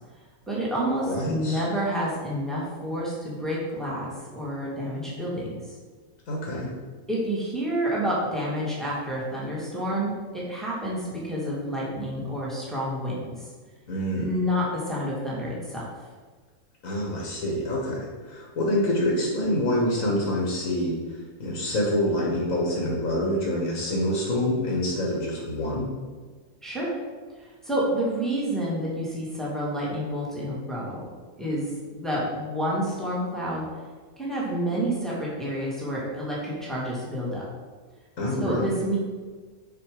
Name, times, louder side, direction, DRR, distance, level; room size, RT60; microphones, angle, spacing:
voice 1, 0.5-5.8 7.1-13.3 14.2-15.8 26.6-26.9 27.4-31.1 31.4-33.6 34.2-37.5 38.4-39.0, equal, ahead, -6 dB, 2.1 m, -29 dB
voice 2, 1.1-1.6 6.3-6.7 13.9-14.3 16.8-21.0 21.4-25.9 38.2-38.7, left 1 dB, 65° left, -3 dB, 1.8 m, -26 dB
7.4 x 5.1 x 5.1 m, 1.4 s
omnidirectional pair, 1.6 m